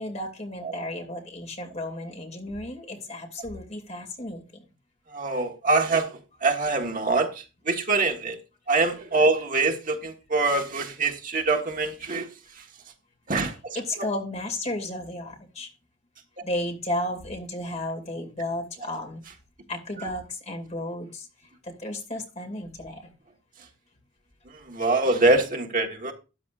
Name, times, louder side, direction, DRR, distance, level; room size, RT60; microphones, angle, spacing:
voice 1, 0.0-4.4 13.8-15.7 16.4-19.2 19.7-21.3 21.8-23.1, left 1 dB, 35° left, 2.6 m, -33 dB
voice 2, 5.1-8.4 8.7-12.3 12.5-12.6 13.3-14.1 18.8-18.9 20.0-20.1 24.4-26.1, right 3 dB, 45° right, 1.5 m, -25 dB
13.0 x 10.5 x 2.5 m
head